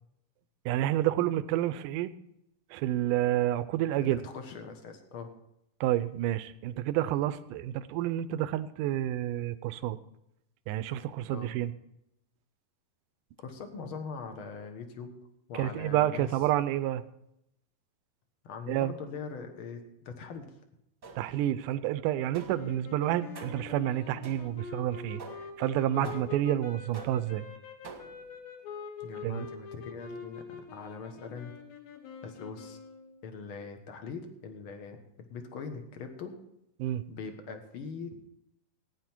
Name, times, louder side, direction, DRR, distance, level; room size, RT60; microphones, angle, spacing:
voice 1, 0.7-2.1 2.7-4.2 5.8-10.0 10.7-11.7 15.5-17.0 18.7-18.9 21.2-25.2 25.6-27.5 29.2-29.5 36.8-37.0, right 13 dB, 80° right, 13 dB, 2.0 m, -29 dB
voice 2, 4.0-5.3 11.3-11.5 13.4-15.1 15.5-16.3 18.4-20.5 26.0-26.1 29.0-30.4 30.7-31.5 32.2-32.8 33.2-36.4 37.1-38.1, left 5 dB, 60° left, 6 dB, 1.4 m, -42 dB
sound 1, 21.0-21.5 22.3-22.8 23.3-23.8 24.2-24.7 25.2-25.6 26.0-26.5 26.9-27.4 27.8-28.3, right 5 dB, 45° right, 1.4 m, -47 dB
sound 2, 22.5-33.3, left 6 dB, 80° left, 3.1 m, -45 dB
15.5 x 9.9 x 4.5 m, 0.80 s
omnidirectional pair, 4.1 m